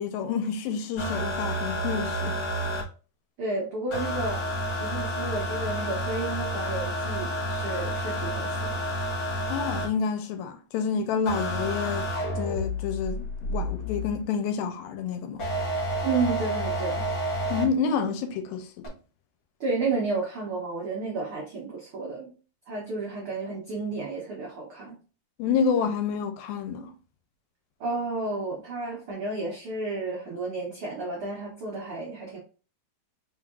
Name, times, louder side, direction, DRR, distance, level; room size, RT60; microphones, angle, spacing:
voice 1, 0.0-2.4 9.5-12.1 12.4-15.5 17.5-18.9 25.4-26.9, left 6 dB, 85° left, 2.4 m, -29 dB
sound 1, 1.0-2.8 3.9-9.9 11.2-14.2 15.4-17.6 18.8-18.9, equal, 45° left, 1.6 m, -30 dB
voice 2, 3.4-4.4 4.8-8.9 16.0-17.1 19.6-22.3 22.7-25.0 27.8-32.4, right 3 dB, 90° right, 1.1 m, -32 dB
5.1 x 3.7 x 2.4 m
omnidirectional pair, 4.1 m